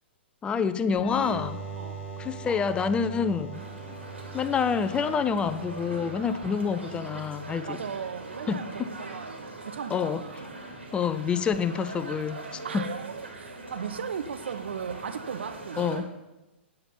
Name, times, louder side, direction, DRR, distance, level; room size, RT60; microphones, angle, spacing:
voice 1, 0.4-1.6 2.2-3.6 4.3-7.8 8.5-8.9 9.9-10.2 10.9-12.9 15.8-16.0, left 6 dB, 15° left, 11 dB, 0.5 m, -27 dB
sound 1, 1.0-8.4, right 2 dB, 30° left, 2.1 m, -41 dB
voice 2, 1.7-2.2 7.6-10.4 12.6-16.1, right 7 dB, 70° right, 11 dB, 0.7 m, -37 dB
sound 2, 3.5-16.0, right 2 dB, 85° right, 2.3 m, -42 dB
8.8 x 7.8 x 5.7 m, 1.0 s
figure-of-eight pair, 115°, 6 cm